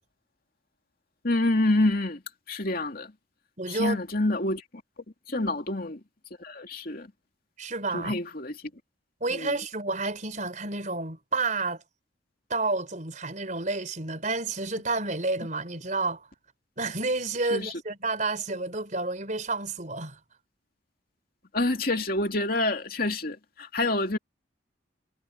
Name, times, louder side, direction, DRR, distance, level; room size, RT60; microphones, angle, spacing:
voice 1, 1.2-2.2 2.5-3.1 3.7-4.6 5.3-6.0 6.4-7.1 7.9-8.5 9.3-9.5 17.5-17.8 21.5-24.2, left 2 dB, 50° left, 2.6 m, -27 dB
voice 2, 3.6-4.0 5.3-5.5 7.6-8.1 9.2-11.8 12.5-16.3 16.8-20.2, right 3 dB, 40° right, 4.5 m, -30 dB
head